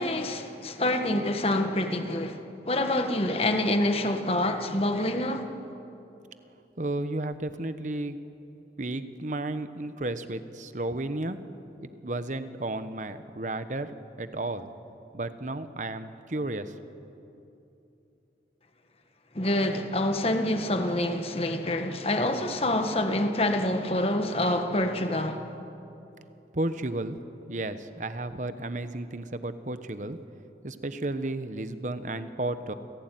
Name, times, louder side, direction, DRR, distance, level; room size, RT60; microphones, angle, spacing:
voice 1, 0.0-5.5 19.3-25.4, left 1 dB, 35° left, 1.6 m, -27 dB
voice 2, 6.8-8.2 8.8-11.4 11.8-14.7 15.1-16.8 26.5-27.2 27.5-30.2 30.6-32.7, right 2 dB, 45° right, 1.1 m, -33 dB
29.5 x 16.5 x 9.3 m
head